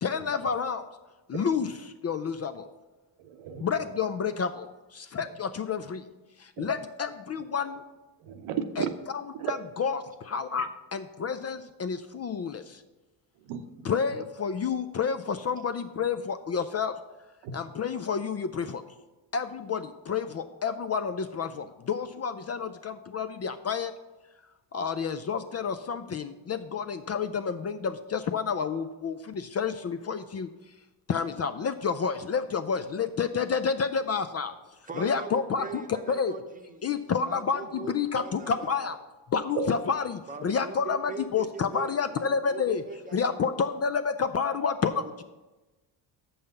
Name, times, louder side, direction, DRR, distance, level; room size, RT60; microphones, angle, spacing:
voice 1, 0.0-0.9 1.3-1.7 2.0-2.7 3.6-6.1 6.4-7.8 8.8-8.9 9.5-12.8 13.8-17.0 17.5-18.8 19.3-23.9 24.7-30.5 31.1-34.5 35.0-36.3 36.8-39.0 39.3-42.8 43.1-45.2, left 6 dB, 35° left, 11 dB, 0.4 m, -29 dB
voice 2, 3.2-3.7 5.2-5.3 6.6-6.7 8.2-8.9 9.3-9.5 10.6-10.7 13.4-13.9 17.4-17.6 39.5-39.7, right 8 dB, 90° right, 7 dB, 0.9 m, -34 dB
voice 3, 34.9-39.0 40.3-43.8 44.9-45.2, right 5 dB, 15° right, 5 dB, 0.9 m, -42 dB
6.9 x 5.5 x 6.5 m, 1.1 s
cardioid pair, 90°, 48 cm